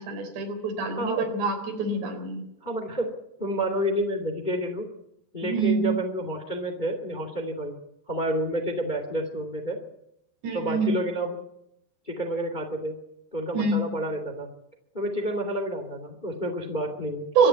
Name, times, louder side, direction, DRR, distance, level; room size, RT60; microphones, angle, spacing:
voice 1, 0.0-2.4 5.4-6.0 10.4-11.0 13.5-13.8 17.4-17.5, right 4 dB, 85° right, 5 dB, 6.0 m, -25 dB
voice 2, 2.6-3.1 3.4-4.9 5.3-7.8 8.1-9.8 10.5-11.4 12.1-13.0 13.3-14.5 14.9-17.3, equal, 15° left, 5 dB, 2.0 m, -29 dB
24.5 x 11.0 x 9.6 m, 0.79 s
omnidirectional pair, 4.8 m